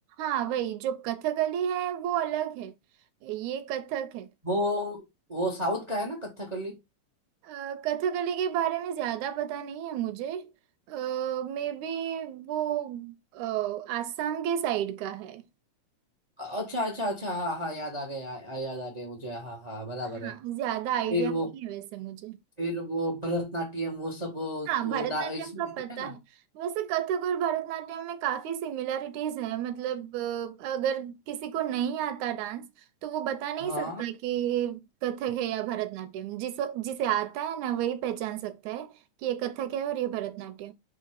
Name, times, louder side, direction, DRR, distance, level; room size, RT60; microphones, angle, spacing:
voice 1, 0.2-2.7 3.2-4.3 7.4-10.5 10.9-15.4 20.2-21.3 21.6-22.4 24.7-26.2 26.6-32.7 33.0-38.9 39.2-40.7, right 10 dB, 75° right, 2.0 m, -31 dB
voice 2, 4.4-5.0 5.3-6.8 16.4-20.3 21.1-21.5 22.6-25.5 25.9-26.1 33.6-34.0, equal, 60° right, 0.4 m, -32 dB
5.7 x 3.7 x 4.7 m
omnidirectional pair, 3.8 m